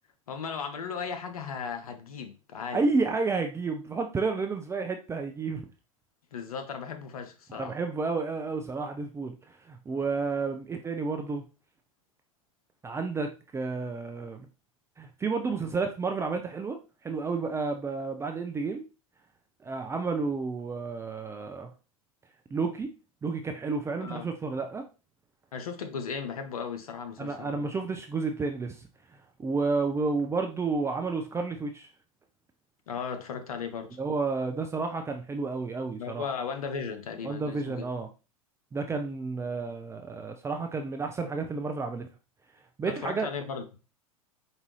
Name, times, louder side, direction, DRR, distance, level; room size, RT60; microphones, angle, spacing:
voice 1, 0.3-2.9 6.3-7.8 24.0-24.3 25.5-27.7 32.9-34.0 36.0-37.9 42.8-43.6, left 6 dB, 80° left, 0.8 m, -36 dB
voice 2, 2.7-5.6 7.6-11.4 12.8-14.5 15.0-18.9 19.6-21.7 22.5-22.9 23.2-24.9 27.2-28.8 29.4-31.9 34.0-36.3 37.2-38.1 38.7-42.1 42.8-43.3, right 4 dB, 15° right, 0.4 m, -31 dB
5.1 x 2.6 x 3.1 m
hypercardioid pair, 95°, 18 cm